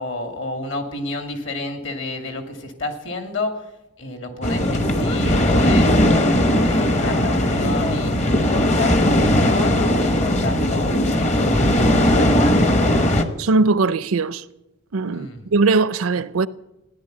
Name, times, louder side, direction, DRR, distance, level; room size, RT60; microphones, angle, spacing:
voice 1, 0.0-3.6 4.0-5.9 6.3-12.7 15.1-15.4, left 2 dB, 55° left, 2.4 m, -30 dB
sound 1, 4.4-13.2, left 1 dB, 30° left, 1.0 m, -18 dB
voice 2, 13.4-14.4 14.9-16.5, right 3 dB, 75° right, 0.6 m, -20 dB
16.0 x 11.0 x 7.9 m
head